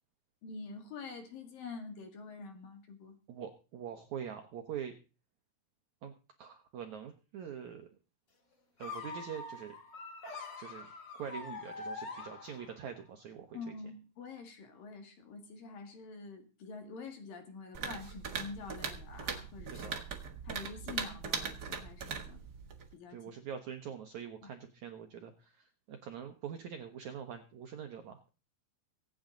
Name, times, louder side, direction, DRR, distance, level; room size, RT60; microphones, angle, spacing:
voice 1, 0.4-3.2 13.5-19.8 20.4-22.4 22.9-23.2 24.4-24.5, left 4 dB, 60° left, 6 dB, 3.6 m, -46 dB
voice 2, 3.3-4.9 6.0-6.1 6.4-7.9 8.8-9.8 10.6-10.9 11.1-13.7 19.7-20.0 23.1-28.3, right 8 dB, 70° right, 5 dB, 1.8 m, -44 dB
sound 1, 8.8-12.9, left 3 dB, 35° left, 2.4 m, -44 dB
sound 2, 17.7-22.9, right 6 dB, 90° right, 0.8 m, -40 dB
24.5 x 8.8 x 3.9 m, 0.34 s
omnidirectional pair, 4.7 m